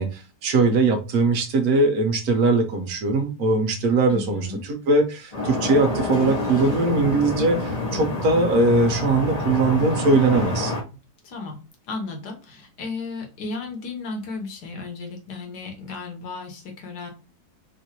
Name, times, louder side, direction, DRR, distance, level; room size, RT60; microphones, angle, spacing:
voice 1, 0.0-10.7, right 3 dB, 60° right, 5 dB, 1.1 m, -21 dB
voice 2, 4.1-4.7 11.2-11.6 11.9-17.1, left 3 dB, 65° left, 3 dB, 1.4 m, -34 dB
sound 1, 5.3-10.8, left 2 dB, 40° left, 0.5 m, -27 dB
3.7 x 2.6 x 2.8 m, 0.30 s
omnidirectional pair, 2.0 m